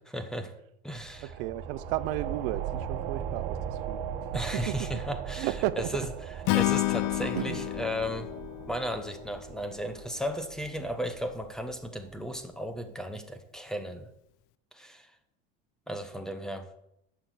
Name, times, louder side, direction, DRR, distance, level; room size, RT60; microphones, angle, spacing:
voice 1, 0.1-0.5 0.8-1.3 4.3-6.1 6.5-8.3 8.7-14.1 14.7-15.1 15.9-16.8, equal, ahead, 0.9 m, -35 dB
sound 1, 0.9-12.1, right 8 dB, 85° right, 1.4 m, -39 dB
voice 2, 1.2-4.0 4.5-4.8 5.4-6.1 7.2-7.7, right 15 dB, 70° right, 0.7 m, -33 dB
Acoustic guitar / Strum, 6.5-9.7, left 21 dB, 50° left, 0.4 m, -30 dB
11.5 x 6.4 x 8.4 m
cardioid pair, 165°, 29 cm